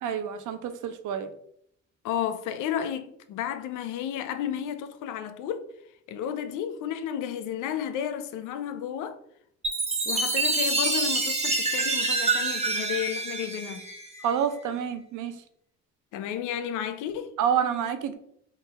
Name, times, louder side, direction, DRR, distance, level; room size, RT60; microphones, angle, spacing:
voice 1, 0.0-1.3 14.2-15.3 17.4-18.1, right 8 dB, 80° right, 0.6 m, -28 dB
voice 2, 2.0-5.7 6.1-9.2 10.1-13.9 16.1-17.3, left 9 dB, 90° left, 0.5 m, -32 dB
Chime, 9.6-14.3, right 3 dB, 20° right, 0.9 m, -27 dB
3.8 x 2.4 x 4.0 m
cardioid pair, 90°, 30 cm